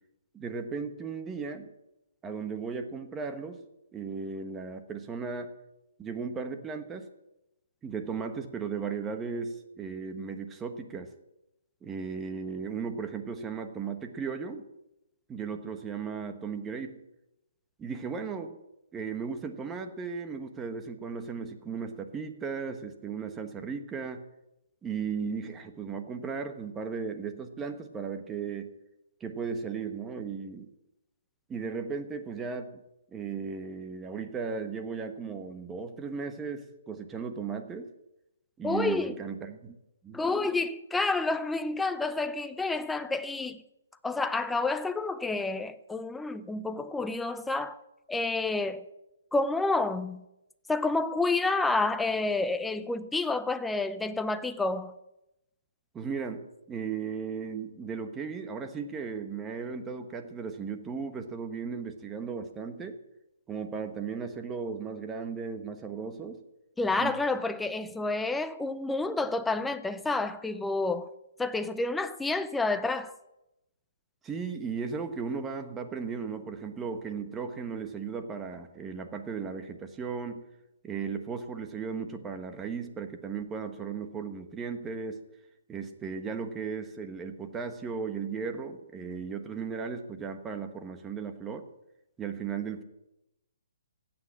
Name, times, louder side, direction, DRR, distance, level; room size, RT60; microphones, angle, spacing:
voice 1, 0.3-1.7 2.2-3.6 3.9-5.5 6.0-7.1 7.8-11.1 11.8-14.6 15.3-17.0 17.8-18.6 18.9-24.2 24.8-28.7 29.2-30.7 31.5-32.7 33.1-37.9 38.6-39.8 40.0-40.2 55.9-63.0 63.5-66.4 67.0-67.1 74.2-80.4 80.8-85.2 85.7-91.6 92.2-92.8, right 5 dB, 10° right, 1.2 m, -36 dB
voice 2, 38.6-39.1 40.1-43.6 44.0-47.8 48.1-48.9 49.3-50.2 50.7-54.9 66.8-71.1 71.4-73.2, left 3 dB, 5° left, 0.6 m, -29 dB
15.5 x 8.9 x 8.7 m
hypercardioid pair, 160°, 0 cm